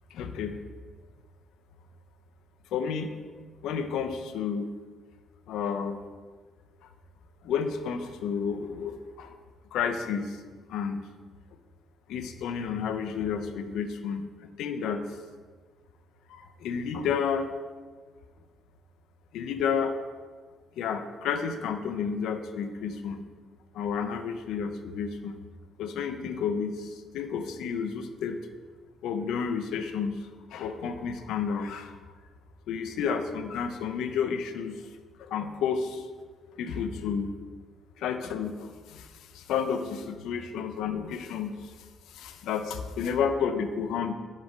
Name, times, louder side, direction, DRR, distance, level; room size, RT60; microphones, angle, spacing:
voice 1, 0.1-0.6 2.7-3.1 3.6-4.7 5.5-6.0 7.4-9.3 9.7-10.4 10.7-11.0 12.1-14.3 14.6-15.2 16.3-17.5 19.3-19.9 20.8-23.2 23.7-25.4 25.8-28.4 29.0-32.0 32.7-34.8 35.2-36.1 36.5-37.3 38.0-44.1, left 6 dB, 85° left, 8 dB, 0.4 m, -31 dB
7.0 x 3.2 x 5.0 m, 1.5 s
cardioid pair, 90°, 0 cm